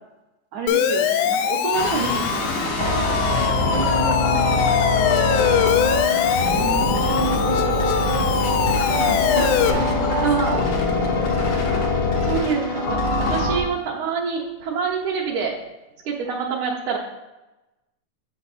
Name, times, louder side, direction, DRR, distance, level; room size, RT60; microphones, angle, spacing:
voice 1, 0.5-2.9 5.0-5.2 6.5-7.1 10.2-10.5 11.7-11.8 12.2-13.0 13.3-15.5 16.1-17.0, right 5 dB, 80° right, -2 dB, 2.5 m, -26 dB
Siren, 0.7-9.7, left 9 dB, 85° left, 1.4 m, -23 dB
sound 1, 1.7-13.6, left 2 dB, 70° left, 0.9 m, -22 dB
voice 2, 2.8-5.1 6.0-6.4 7.0-8.8 9.3-11.4 13.2-13.6, right 1 dB, 40° right, -3 dB, 0.6 m, -32 dB
7.0 x 5.8 x 4.2 m, 1.0 s
omnidirectional pair, 3.5 m